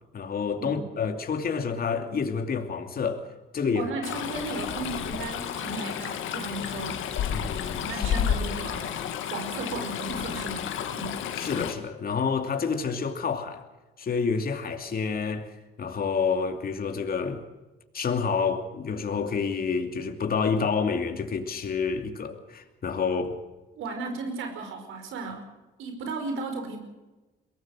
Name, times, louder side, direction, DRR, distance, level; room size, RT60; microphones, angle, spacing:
voice 1, 0.0-3.2 3.5-3.9 7.3-8.1 11.3-13.6 14.0-15.5 15.8-17.4 17.9-23.4, left 5 dB, 50° left, 2.7 m, -28 dB
voice 2, 3.7-7.1 7.7-11.2 23.7-25.5 25.8-26.8, right 3 dB, 85° right, 5.0 m, -35 dB
Stream, 4.0-11.7, left 9 dB, 85° left, 2.2 m, -31 dB
23.0 x 18.0 x 6.5 m
cardioid pair, 90°, 20 cm